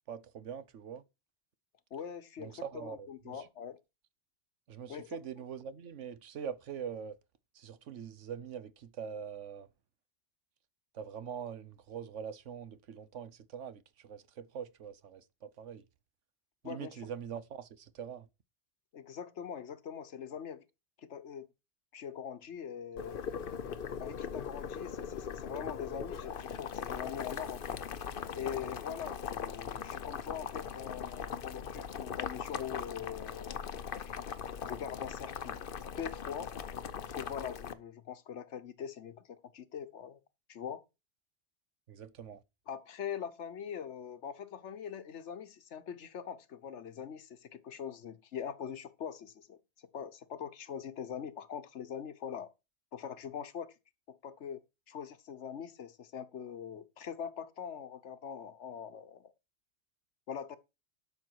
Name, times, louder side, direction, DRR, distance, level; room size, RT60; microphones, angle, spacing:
voice 1, 0.1-1.0 2.4-3.5 4.7-7.2 7.5-9.7 10.9-15.8 16.6-18.3 41.9-42.4, right 7 dB, 85° right, 1.2 m, -43 dB
voice 2, 1.9-3.8 4.9-5.2 16.6-17.0 18.9-20.6 21.0-21.5 21.9-23.2 24.0-27.8 28.3-33.7 34.0-34.3 34.7-35.6 35.9-36.5 37.1-40.2 40.5-40.8 42.7-49.6 49.9-52.5 52.9-53.7 54.1-59.3 60.3-60.6, left 8 dB, 75° left, 1.2 m, -42 dB
Boiling, 23.0-37.7, left 7 dB, 55° left, 0.9 m, -40 dB
12.0 x 6.4 x 4.7 m
omnidirectional pair, 1.2 m